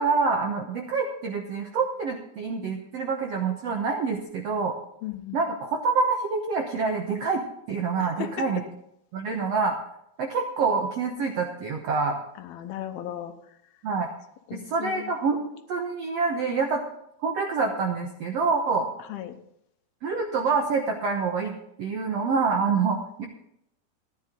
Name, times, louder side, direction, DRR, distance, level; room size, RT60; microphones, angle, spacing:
voice 1, 0.0-4.7 5.3-8.6 9.1-9.8 10.2-12.2 13.8-14.1 14.5-16.8 17.2-18.9 20.0-21.5 21.8-23.3, right 4 dB, 75° right, 2 dB, 1.5 m, -26 dB
voice 2, 5.0-5.4 8.0-8.5 12.4-13.3 14.5-15.1 19.1-19.4, left 10 dB, 80° left, 8 dB, 2.8 m, -36 dB
14.5 x 10.5 x 3.8 m, 0.77 s
omnidirectional pair, 4.4 m